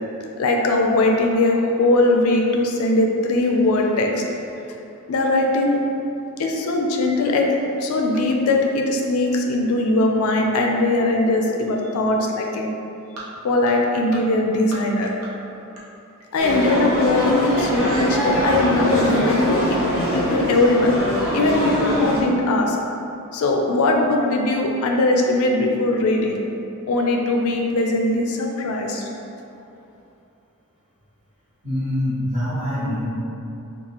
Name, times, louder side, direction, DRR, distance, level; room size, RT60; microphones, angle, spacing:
voice 1, 0.4-4.2 5.1-5.8 6.4-7.5 7.8-12.7 13.4-15.1 16.3-19.8 20.1-20.9 21.3-22.8 23.3-26.4 26.9-29.1, left 2 dB, 75° left, 1 dB, 0.4 m, -20 dB
sound 1, 13.1-13.3 13.6-13.7 14.1-14.2 14.5-14.8 15.0-15.3 15.7-15.8 16.2-16.3, right 2 dB, 85° right, 0.7 m, -37 dB
sound 2, 16.4-22.2, equal, 15° right, 1.0 m, -23 dB
voice 2, 31.6-33.0, left 1 dB, 30° right, -12 dB, 1.3 m, -24 dB
3.9 x 2.3 x 2.9 m, 2.8 s
head